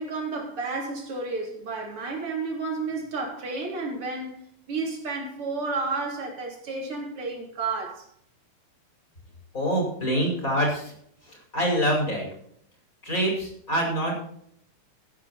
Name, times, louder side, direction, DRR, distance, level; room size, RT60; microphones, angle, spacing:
voice 1, 0.0-4.4 4.7-8.1, right 3 dB, 45° right, 4.3 m, -31 dB
voice 2, 9.5-10.9 11.5-12.3 13.0-14.1, equal, 25° left, 5.8 m, -25 dB
15.5 x 9.8 x 4.3 m
omnidirectional pair, 3.7 m